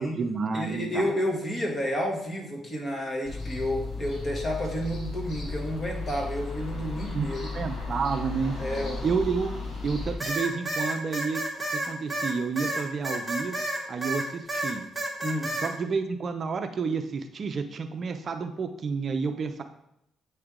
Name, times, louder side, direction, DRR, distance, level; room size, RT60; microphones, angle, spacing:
voice 1, 0.0-1.1 7.1-7.3 7.5-8.6 9.0-9.5 9.8-11.4 11.7-13.6 13.9-14.9 15.6-19.6, right 5 dB, 45° right, 7 dB, 0.5 m, -30 dB
voice 2, 0.5-7.4 8.6-9.0 15.2-15.5, equal, 35° left, 0 dB, 1.5 m, -30 dB
sound 1, 3.2-10.1, left 3 dB, 60° left, 1.9 m, -35 dB
sound 2, 10.2-14.2 14.5-15.7, right 1 dB, ahead, 1.3 m, -30 dB
8.6 x 3.3 x 3.7 m, 0.80 s
cardioid pair, 105°, 0 cm